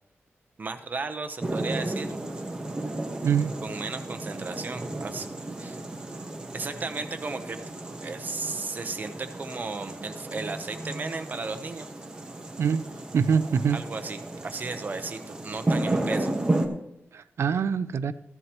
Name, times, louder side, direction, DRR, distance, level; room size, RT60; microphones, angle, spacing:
voice 1, 0.6-2.2 3.6-5.3 5.6-5.8 6.5-7.6 7.9-11.9 13.7-16.3, right 3 dB, 40° right, 8 dB, 0.9 m, -35 dB
sound 1, 1.4-16.7, right 2 dB, 20° right, 1.2 m, -33 dB
voice 2, 3.2-3.5 12.6-12.9 13.1-13.8 17.1-18.1, right 6 dB, 75° right, 14 dB, 0.5 m, -24 dB
14.5 x 11.0 x 3.1 m, 0.79 s
wide cardioid pair, 150°, 5 cm